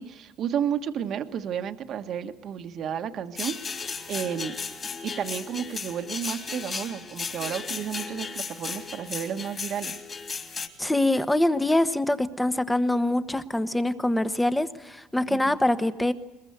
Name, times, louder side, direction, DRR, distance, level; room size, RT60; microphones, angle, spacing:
voice 1, 0.0-4.5 5.0-10.0 15.3-15.6, right 8 dB, 50° right, 7 dB, 1.5 m, -32 dB
sound 1, 3.4-10.7, left 5 dB, 30° left, 3.1 m, -35 dB
voice 2, 10.8-16.1, left 1 dB, 5° left, 11 dB, 1.2 m, -24 dB
22.0 x 21.5 x 8.1 m, 1.1 s
cardioid pair, 115°, 0 cm